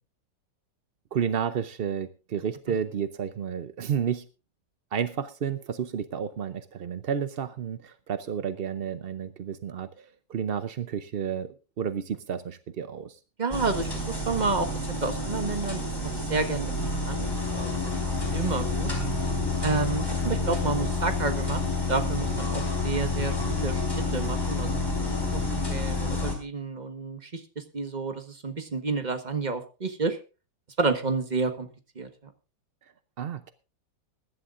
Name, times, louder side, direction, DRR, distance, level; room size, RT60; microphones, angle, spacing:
voice 1, 1.1-4.3 4.9-13.2 33.2-33.5, right 8 dB, 65° right, 11 dB, 0.5 m, -31 dB
voice 2, 13.4-14.7 15.0-16.7 17.0-17.9 18.3-18.9 19.6-21.6 21.9-23.8 24.1-30.2 30.8-31.7 31.9-32.1, right 4 dB, 25° right, 7 dB, 1.4 m, -30 dB
sound 1, 13.5-26.4, left 3 dB, 10° left, 4.1 m, -29 dB
22.0 x 11.5 x 2.5 m, 0.32 s
omnidirectional pair, 1.9 m